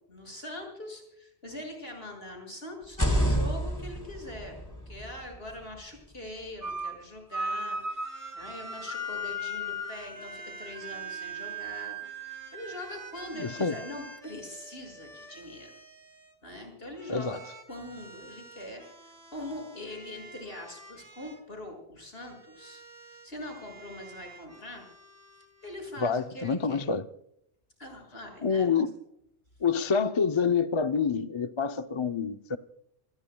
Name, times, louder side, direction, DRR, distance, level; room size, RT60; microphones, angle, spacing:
voice 1, 0.1-12.0 12.2-15.7 16.4-17.4 17.7-22.8 23.1-24.9 25.6-26.8 27.8-28.8, left 1 dB, 60° left, 6.6 m, -42 dB
sound 1, 2.8-6.7, equal, 15° left, 4.8 m, -31 dB
sound 2, 6.6-7.0 7.3-13.4, equal, 15° right, 2.4 m, -37 dB
sound 3, 7.8-16.3 17.0-21.4 22.2-25.8, right 2 dB, 75° right, 3.3 m, -50 dB
voice 2, 13.3-13.8 17.1-17.4 26.0-27.1 28.4-29.0 29.6-32.6, left 5 dB, 30° left, 0.6 m, -27 dB
27.5 x 21.0 x 2.3 m
omnidirectional pair, 1.2 m